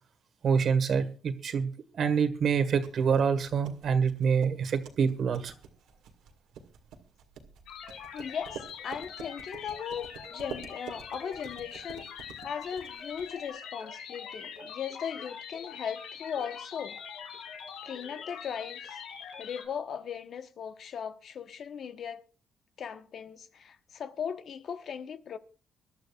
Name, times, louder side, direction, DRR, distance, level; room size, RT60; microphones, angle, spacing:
voice 1, 0.4-1.7 2.0-5.5, right 6 dB, 60° right, 1.7 m, -26 dB
sound 1, 2.8-13.5, right 7 dB, 85° right, 2.0 m, -48 dB
sound 2, 7.7-19.7, left 7 dB, 90° left, 2.4 m, -43 dB
voice 2, 8.1-12.1 12.4-17.0 17.8-19.0 19.4-22.3 22.8-25.4, left 7 dB, 60° left, 1.1 m, -38 dB
24.5 x 11.5 x 2.5 m
cardioid pair, 90°, 0 cm